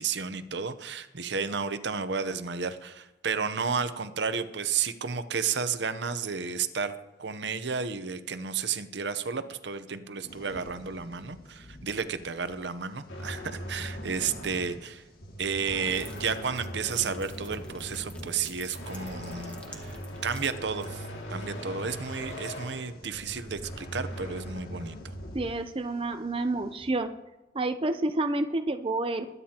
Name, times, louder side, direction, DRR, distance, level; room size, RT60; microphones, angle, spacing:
voice 1, 0.0-15.0 15.4-25.1, right 5 dB, 75° right, 11 dB, 0.8 m, -32 dB
sound 1, 10.2-26.9, left 1 dB, 55° left, 1.9 m, -54 dB
sound 2, 13.1-25.5, equal, 80° left, 2.3 m, -40 dB
sound 3, 15.9-20.9, left 1 dB, 5° left, 1.2 m, -50 dB
voice 2, 25.3-27.1 27.5-29.3, right 2 dB, 30° right, 7 dB, 0.5 m, -29 dB
22.0 x 9.4 x 2.9 m, 1.0 s
head